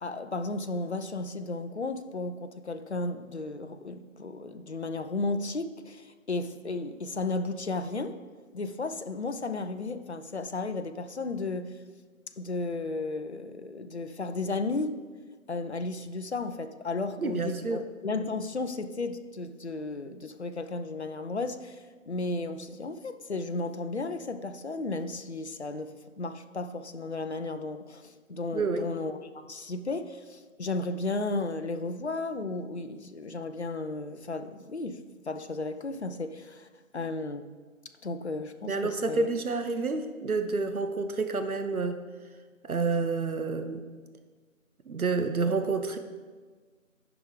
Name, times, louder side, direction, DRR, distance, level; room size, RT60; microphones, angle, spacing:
voice 1, 0.0-8.2 8.5-11.8 12.4-14.9 15.5-36.7 36.9-37.4 38.0-39.3, left 3 dB, 50° left, 8 dB, 0.7 m, -34 dB
voice 2, 17.2-17.8 28.5-28.9 38.6-42.0 42.6-43.8 44.9-46.0, right 4 dB, 85° right, 8 dB, 0.9 m, -29 dB
10.0 x 6.1 x 4.9 m, 1.4 s
figure-of-eight pair, 170°, 42 cm